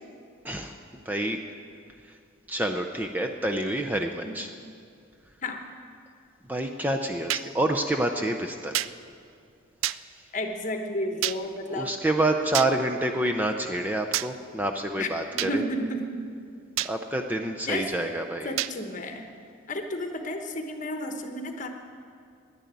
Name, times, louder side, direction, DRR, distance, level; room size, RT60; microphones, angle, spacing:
voice 1, 0.4-1.4 2.5-4.5 6.5-8.9 10.0-10.1 11.7-15.6 16.8-18.6, right 1 dB, 10° right, 3 dB, 0.5 m, -28 dB
sound 1, 7.3-7.5 8.7-8.9 9.8-10.0 11.2-11.4 12.5-12.7 14.1-14.3 15.4-15.5 16.8-16.9 18.6-18.7, right 14 dB, 80° right, 0.3 m, -27 dB
voice 2, 10.3-11.9 15.0-15.1 15.3-16.2 17.7-17.9 18.4-19.3 19.7-21.7, left 1 dB, 40° left, 5 dB, 1.1 m, -32 dB
10.5 x 10.5 x 9.3 m, 2.3 s
head